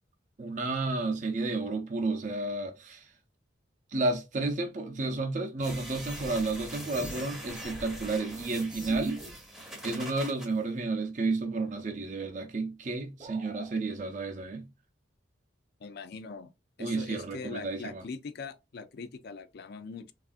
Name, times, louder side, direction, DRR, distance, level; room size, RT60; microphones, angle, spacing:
voice 1, 0.4-3.1 3.9-9.2 9.8-14.7 16.8-18.0, right 3 dB, 40° right, 0.5 m, -31 dB
sound 1, 5.6-10.5, equal, 5° right, 0.7 m, -42 dB
sound 2, 13.2-13.8, right 4 dB, 25° right, 0.9 m, -47 dB
voice 2, 15.8-16.5 16.8-20.1, left 4 dB, 55° left, 0.4 m, -42 dB
3.5 x 2.4 x 2.4 m
head